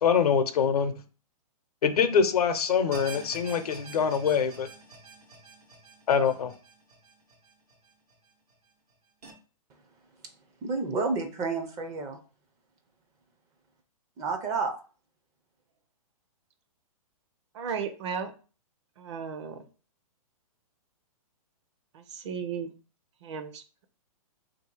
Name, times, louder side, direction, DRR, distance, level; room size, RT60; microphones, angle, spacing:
voice 1, 0.0-0.9 1.8-4.7 6.1-6.5, left 6 dB, 85° left, 0.7 m, -24 dB
sound 1, 2.9-8.1 8.5-8.6 9.2-9.3, right 3 dB, 85° right, 1.2 m, -46 dB
voice 2, 10.6-12.2 14.2-14.7, right 4 dB, 15° right, 0.4 m, -30 dB
voice 3, 17.5-18.3 19.0-19.6 21.9-22.7 23.2-23.8, right 6 dB, 50° right, 0.7 m, -35 dB
3.4 x 2.7 x 4.4 m
hypercardioid pair, 150°, 19 cm